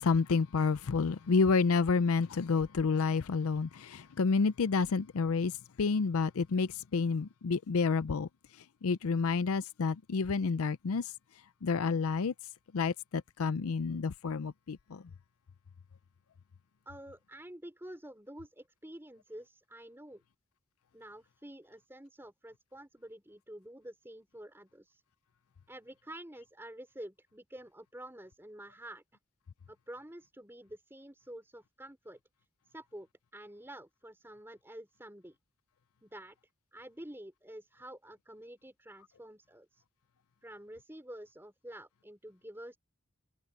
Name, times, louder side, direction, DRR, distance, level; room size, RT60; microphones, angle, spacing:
voice 1, 0.0-8.3 8.6-11.1 11.6-12.3 12.7-15.0, left 4 dB, 80° left, 0.5 m, -29 dB
voice 2, 16.9-20.2 20.9-25.0 25.7-29.0 29.7-32.2 32.7-35.4 36.0-36.4 36.7-39.8 40.4-42.8, right 1 dB, 10° right, 4.0 m, -49 dB
head